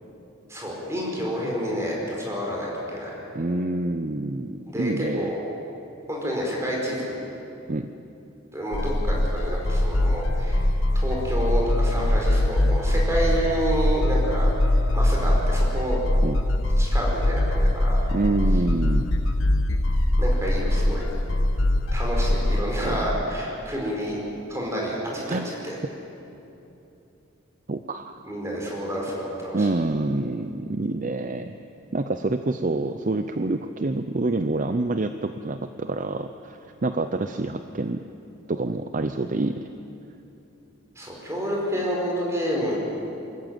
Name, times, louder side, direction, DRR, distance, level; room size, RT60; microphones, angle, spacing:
voice 1, 0.5-3.1 4.7-5.4 6.1-7.2 8.5-10.6 10.9-16.0 16.8-18.0 20.2-21.0 21.9-24.2 24.5-25.8 28.2-29.7 40.9-42.8, equal, 15° right, -3 dB, 4.9 m, -29 dB
voice 2, 3.3-5.3 7.7-7.9 16.2-16.4 18.1-19.1 22.8-23.0 25.3-25.5 27.7-28.2 29.5-31.5 31.9-38.1 38.5-39.6, right 2 dB, 40° right, 8 dB, 0.6 m, -27 dB
sound 1, 8.7-22.6, left 1 dB, 85° left, 1.2 m, -22 dB
25.0 x 14.0 x 9.1 m, 2.9 s
head